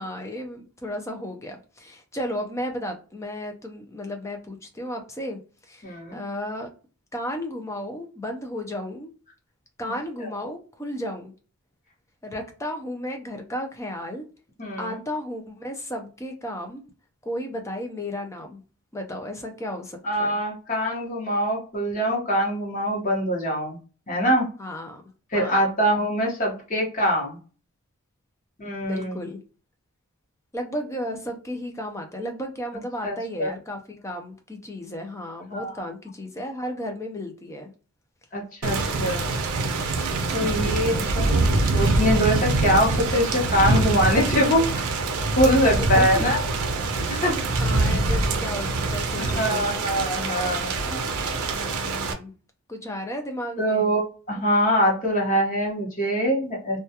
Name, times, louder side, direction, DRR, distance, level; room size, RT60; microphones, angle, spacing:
voice 1, 0.0-5.4 5.7-6.7 7.1-9.1 9.8-11.3 12.2-14.3 14.8-16.8 17.2-18.6 18.9-20.4 24.6-25.0 25.3-25.7 28.8-29.4 30.5-37.7 38.8-39.4 45.4-46.2 47.0-49.8 50.4-50.5 51.4-52.3 52.7-53.9 54.3-54.4, left 1 dB, 15° left, 4 dB, 0.4 m, -34 dB
voice 2, 5.8-6.2 14.6-15.0 20.0-23.8 24.1-24.5 25.3-27.4 28.6-29.2 33.0-33.5 35.5-35.9 38.3-39.3 40.3-44.9 45.3-46.4 47.2-47.3 49.3-51.3 53.6-54.0 54.3-56.8, equal, 35° left, -1 dB, 0.8 m, -23 dB
Thunder / Rain, 38.6-52.1, right 3 dB, 85° right, 0.5 m, -24 dB
2.2 x 2.2 x 2.7 m, 0.36 s
head